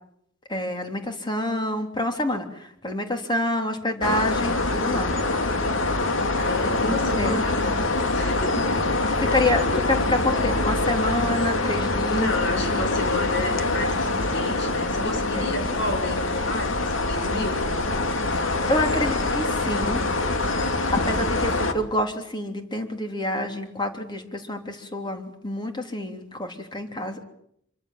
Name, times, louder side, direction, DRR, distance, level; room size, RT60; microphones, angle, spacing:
voice 1, 0.5-5.1 6.7-7.4 9.1-12.3 15.3-15.5 18.7-20.0 20.9-27.2, left 1 dB, 25° left, 4 dB, 3.3 m, -27 dB
sound 1, 4.0-21.7, left 2 dB, 80° left, 2.5 m, -24 dB
voice 2, 6.3-8.9 9.3-9.4 9.7-10.5 12.1-17.7, left 2 dB, 65° left, 5 dB, 7.5 m, -31 dB
26.5 x 24.5 x 7.4 m, 0.73 s
head